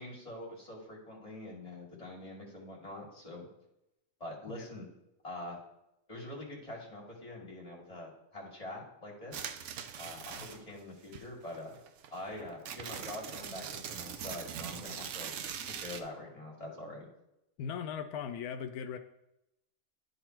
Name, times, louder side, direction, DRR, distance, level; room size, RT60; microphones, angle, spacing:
voice 1, 0.0-3.5 4.2-4.9 5.2-5.6 6.1-9.5 10.0-11.8 12.1-15.3 15.8-17.1, left 1 dB, 25° left, -3 dB, 2.1 m, -44 dB
sound 1, 9.3-10.8 11.1-16.0, right 8 dB, 65° right, 0.9 m, -42 dB
voice 2, 17.6-19.0, left 7 dB, 90° left, 9 dB, 1.1 m, -38 dB
10.5 x 4.0 x 4.4 m, 0.87 s
omnidirectional pair, 1.5 m